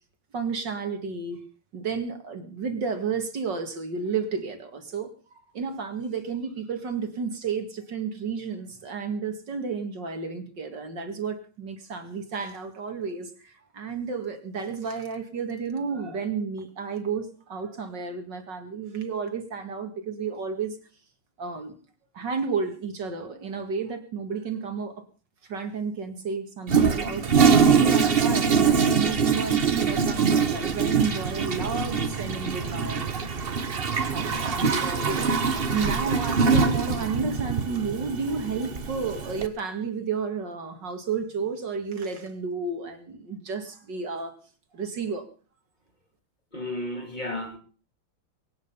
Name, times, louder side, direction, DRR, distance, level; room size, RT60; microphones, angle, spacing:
voice 1, 0.3-1.4 1.7-5.1 5.5-20.8 21.4-21.7 22.1-25.0 25.5-27.3 27.6-33.1 34.1-35.3 35.7-44.3 44.7-45.3, right 5 dB, 60° right, 2.6 m, -32 dB
Toilet flush, 26.7-39.5, right 5 dB, 35° right, 1.1 m, -23 dB
voice 2, 46.5-47.6, left 1 dB, 20° left, 3.1 m, -33 dB
23.5 x 9.5 x 5.5 m
omnidirectional pair, 2.2 m